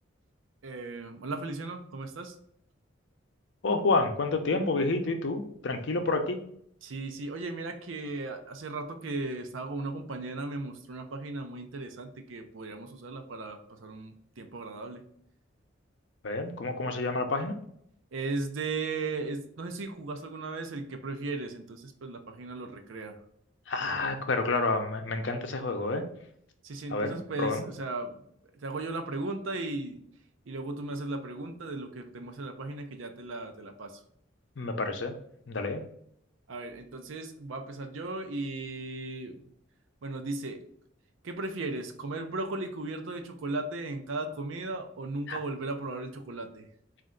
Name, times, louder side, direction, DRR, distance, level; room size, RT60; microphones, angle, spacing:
voice 1, 0.6-2.3 6.8-15.0 18.1-23.2 26.6-28.1 28.5-30.0 30.5-34.0 36.5-39.4 40.0-40.6 41.2-46.6, right 2 dB, 80° right, 6 dB, 0.6 m, -36 dB
voice 2, 3.6-6.4 16.2-17.6 23.7-26.0 26.9-27.6 34.6-35.1 35.5-35.8 45.3-45.4, left 3 dB, 65° left, 6 dB, 0.6 m, -29 dB
4.2 x 2.5 x 3.7 m, 0.69 s
head